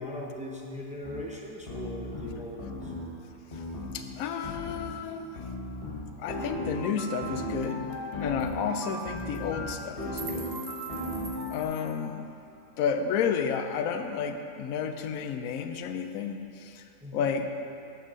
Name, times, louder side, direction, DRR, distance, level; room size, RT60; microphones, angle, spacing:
voice 1, 0.0-2.9 17.0-17.2, left 1 dB, 10° right, -2 dB, 0.4 m, -39 dB
sound 1, 1.0-1.2 1.7-3.1 3.5-4.0 4.4-4.9 5.4-11.6, left 1 dB, 40° left, 1.7 m, -36 dB
voice 2, 3.9-5.4 6.2-7.9 8.2-10.6 11.5-12.3 12.8-16.8 17.1-17.6, left 7 dB, 75° left, 7 dB, 1.0 m, -31 dB
sound 2, 7.3-7.4 7.6-7.7 7.9-8.1 8.4-8.5 9.2-9.4 9.7-12.0, right 6 dB, 55° right, 0.8 m, -44 dB
9.4 x 4.4 x 6.3 m, 2.7 s
omnidirectional pair, 1.5 m